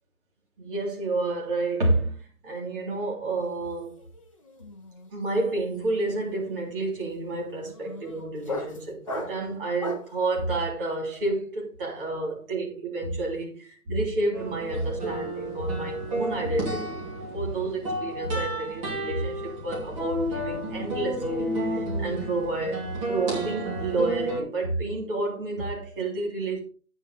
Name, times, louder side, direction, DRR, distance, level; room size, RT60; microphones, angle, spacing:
voice 1, 0.6-2.2 2.4-4.0 5.1-26.6, right 2 dB, 35° right, 3.2 m, -30 dB
sound 1, 3.4-3.7 4.0-10.2, left 2 dB, 20° left, 0.7 m, -39 dB
sound 2, 14.3-24.4, right 1 dB, 20° right, 2.7 m, -32 dB
8.9 x 7.2 x 3.9 m
figure-of-eight pair, 155°, 46 cm